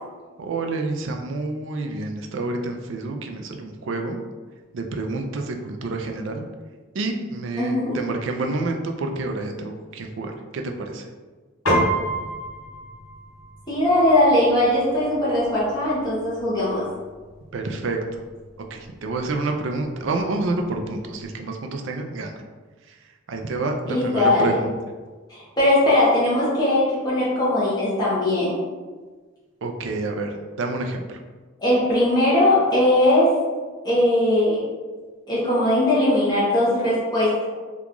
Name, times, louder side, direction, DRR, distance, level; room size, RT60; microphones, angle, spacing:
voice 1, 0.4-4.2 4.7-6.4 6.9-11.1 17.5-18.2 18.7-22.3 22.9-23.0 23.3-24.7 29.6-31.2, right 3 dB, 65° right, 3 dB, 0.4 m, -28 dB
voice 2, 7.6-8.0 13.7-16.9 23.9-24.5 25.3-28.5 31.6-33.3 33.8-34.6 35.3-37.4, left 1 dB, 20° left, -10 dB, 0.9 m, -20 dB
Piano, 11.7-21.3, right 1 dB, 85° left, 1.4 m, -32 dB
2.9 x 2.3 x 3.7 m, 1.4 s
head